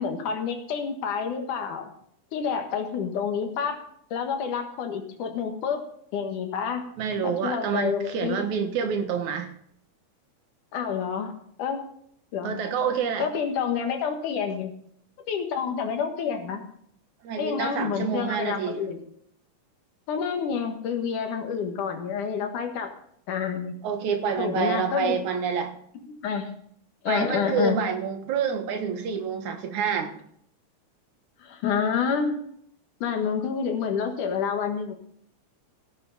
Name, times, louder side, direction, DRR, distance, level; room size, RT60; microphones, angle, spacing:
voice 1, 0.0-1.9 2.3-3.8 4.1-5.8 6.1-6.8 7.2-8.4 10.7-11.3 11.6-11.8 12.3-12.6 13.2-14.7 15.2-16.6 17.4-19.0 20.1-22.9 23.3-23.7 24.4-25.2 26.0-26.5 27.0-27.8 31.4-32.4 33.0-34.9, left 6 dB, 80° left, 5 dB, 3.1 m, -28 dB
voice 2, 7.0-9.5 12.4-13.3 17.2-18.8 23.8-25.7 27.1-30.1, right 6 dB, 75° right, 5 dB, 2.8 m, -27 dB
16.0 x 10.0 x 4.1 m, 0.67 s
omnidirectional pair, 3.6 m